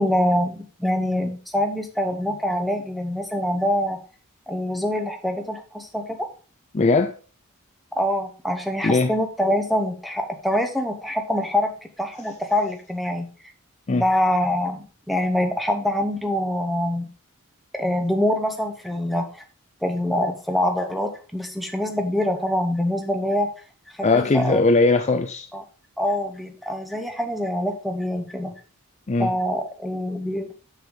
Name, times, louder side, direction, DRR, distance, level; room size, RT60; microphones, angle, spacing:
voice 1, 0.0-4.0 4.5-6.2 8.0-11.7 12.0-13.3 13.9-17.1 17.7-19.3 19.8-23.5 24.0-24.6 25.5-25.6 26.0-28.5 29.2-30.5, left 1 dB, ahead, 5 dB, 0.9 m, -25 dB
voice 2, 6.7-7.1 8.8-9.1 13.9-14.0 24.0-25.5 29.1-29.3, left 3 dB, 30° left, 6 dB, 0.5 m, -19 dB
6.7 x 6.4 x 3.8 m, 0.37 s
head